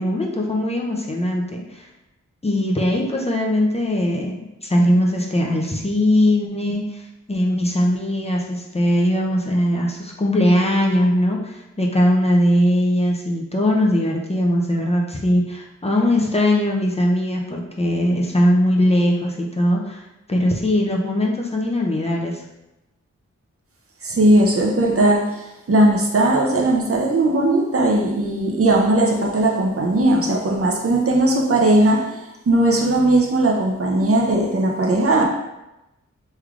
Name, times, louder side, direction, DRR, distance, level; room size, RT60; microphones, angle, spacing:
voice 1, 0.0-1.9 2.4-20.0 20.3-22.4, left 1 dB, 20° left, -2 dB, 0.5 m, -20 dB
voice 2, 24.0-35.2, right 1 dB, 50° right, -1 dB, 0.7 m, -18 dB
3.4 x 3.2 x 2.4 m, 0.96 s
cardioid pair, 55°, 30 cm